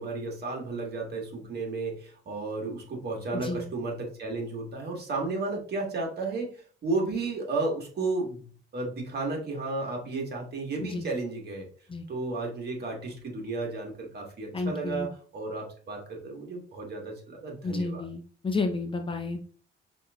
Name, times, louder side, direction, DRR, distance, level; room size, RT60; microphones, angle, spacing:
voice 1, 0.0-8.5 8.7-11.7 12.1-18.0, right 3 dB, 55° right, 0 dB, 1.4 m, -33 dB
voice 2, 3.3-3.6 10.8-11.1 11.9-12.1 14.5-15.1 17.6-19.4, left 3 dB, 25° left, 5 dB, 0.6 m, -31 dB
5.5 x 2.6 x 2.3 m, 0.43 s
cardioid pair, 90°, 20 cm